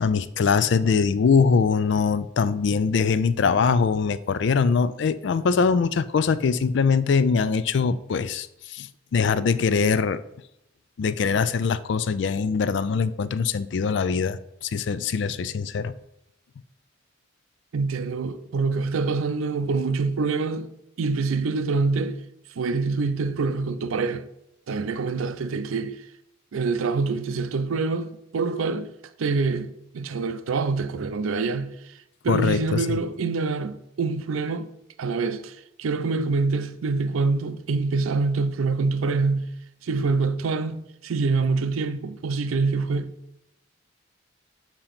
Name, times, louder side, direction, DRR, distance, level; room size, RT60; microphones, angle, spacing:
voice 1, 0.0-10.2 11.0-15.9 32.3-33.0, left 5 dB, 60° left, 0.3 m, -22 dB
voice 2, 17.7-20.7 21.0-22.2 22.6-24.3 24.7-26.0 26.5-28.9 29.2-31.7 32.2-34.7 35.0-39.4 39.8-43.1, right 4 dB, 85° right, 0.4 m, -25 dB
6.8 x 2.9 x 5.6 m
head